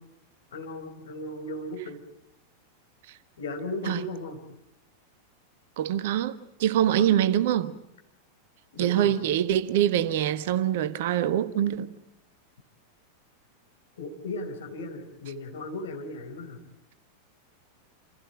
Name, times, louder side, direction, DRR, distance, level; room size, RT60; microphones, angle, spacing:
voice 1, 0.5-2.0 3.4-4.4 6.8-7.0 8.7-9.1 14.0-16.6, left 2 dB, 60° left, 4.4 m, -36 dB
voice 2, 5.8-7.7 8.8-11.9, right 11 dB, 55° right, 1.3 m, -24 dB
28.0 x 16.0 x 9.1 m
figure-of-eight pair, 90°, 0 cm